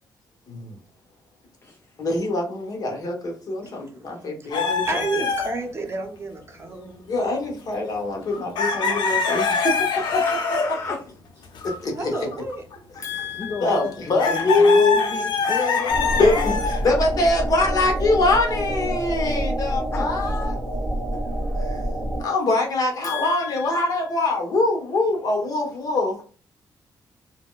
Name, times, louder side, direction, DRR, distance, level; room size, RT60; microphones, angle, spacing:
voice 1, 2.0-5.0 7.1-10.2 11.8-12.3 13.0-15.2 15.6-15.8 16.2-20.6 21.7-21.8 22.2-26.2, left 2 dB, 55° left, 1.0 m, -23 dB
voice 2, 3.6-7.1 12.0-12.6, right 3 dB, 35° right, 0.6 m, -32 dB
sound 1, 4.5-5.8 7.1-7.3 7.6-7.7 8.3-10.8 11.4-11.8 12.1-13.5 14.2-16.9, left 5 dB, 85° left, 0.6 m, -24 dB
voice 3, 10.0-11.0 13.4-16.4 16.8-17.0 19.9-20.1 21.5-21.7, left 4 dB, 35° left, 0.4 m, -32 dB
sound 2, 15.9-22.2, right 1 dB, 5° right, 1.0 m, -27 dB
4.2 x 2.1 x 2.2 m
cardioid pair, 125°, 8 cm